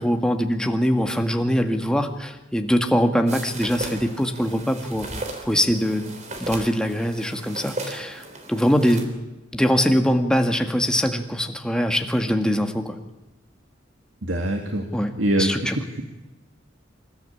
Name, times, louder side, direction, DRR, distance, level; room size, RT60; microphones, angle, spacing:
voice 1, 0.0-5.1 5.4-6.1 6.4-8.2 8.5-9.1 9.5-12.9 14.9-15.1 15.4-15.7, equal, 5° left, 5 dB, 1.8 m, -22 dB
sound 1, 3.3-9.0, right 2 dB, 40° right, 3.4 m, -36 dB
voice 2, 14.2-14.9 15.2-16.0, right 1 dB, 85° right, 3 dB, 2.1 m, -24 dB
26.5 x 13.5 x 8.6 m, 1.0 s
head